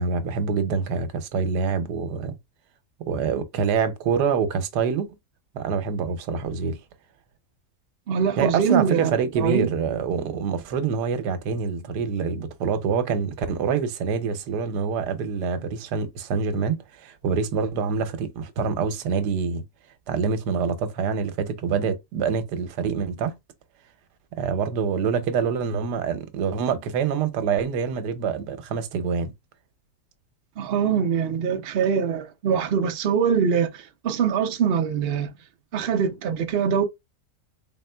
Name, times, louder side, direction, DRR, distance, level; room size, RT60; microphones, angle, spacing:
voice 1, 0.0-2.3 3.0-5.1 5.5-6.8 8.4-19.6 20.1-23.3 24.4-29.3, right 6 dB, 80° right, 1.3 m, -26 dB
voice 2, 8.1-9.7 30.6-35.3 35.7-36.8, right 7 dB, 65° right, 0.6 m, -23 dB
4.0 x 3.6 x 2.2 m
omnidirectional pair, 1.7 m